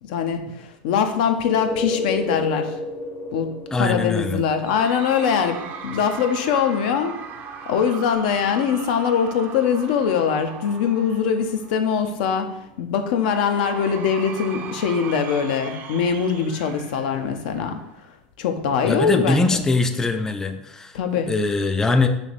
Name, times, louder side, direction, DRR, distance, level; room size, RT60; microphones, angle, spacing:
voice 1, 0.0-2.8 3.3-3.5 3.8-7.1 7.7-12.5 12.8-17.8 18.4-19.6 20.9-21.3, left 7 dB, 75° left, 7 dB, 0.5 m, -22 dB
sound 1, 1.3-12.9 17.1-17.2, left 2 dB, 45° left, 0.8 m, -35 dB
voice 2, 3.7-4.4 18.9-22.1, left 3 dB, 10° left, 7 dB, 0.3 m, -22 dB
Cheering / Crowd, 4.6-11.9 13.2-17.9, right 6 dB, 45° right, 0.5 m, -38 dB
3.2 x 2.9 x 4.0 m, 0.86 s
hypercardioid pair, 100°, 5 cm